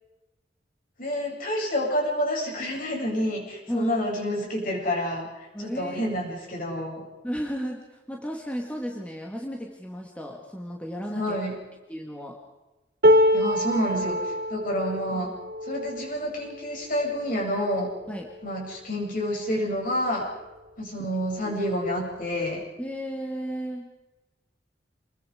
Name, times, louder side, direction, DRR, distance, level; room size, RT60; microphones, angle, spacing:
voice 1, 1.0-5.3 5.6-7.0 11.1-11.6 13.3-15.3 15.6-17.9 18.4-20.2 20.8-22.6, equal, 50° left, -1 dB, 7.6 m, -28 dB
voice 2, 3.7-4.0 5.5-6.0 7.2-11.4 11.9-12.4 15.1-15.4 18.1-18.3 21.0-21.1 21.4-21.6 22.8-23.9, equal, 10° left, 0 dB, 2.0 m, -34 dB
sound 1, 13.0-19.2 19.8-20.0 20.3-21.0 22.0-22.1, left 1 dB, 55° right, 1.9 m, -26 dB
28.5 x 21.5 x 5.1 m, 1.1 s
head